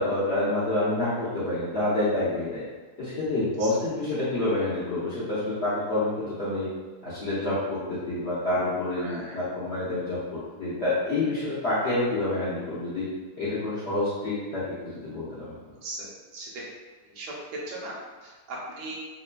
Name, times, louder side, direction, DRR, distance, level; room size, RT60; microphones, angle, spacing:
voice 1, 0.0-2.6 3.0-6.7 7.0-13.1 13.4-15.5, left 2 dB, 50° left, -11 dB, 0.9 m, -28 dB
voice 2, 9.0-9.4 15.8-16.1 16.3-16.6 17.1-17.3 17.7-17.9 18.2-19.0, right 2 dB, 90° right, -4 dB, 1.3 m, -38 dB
3.2 x 2.7 x 2.2 m, 1.4 s
omnidirectional pair, 1.7 m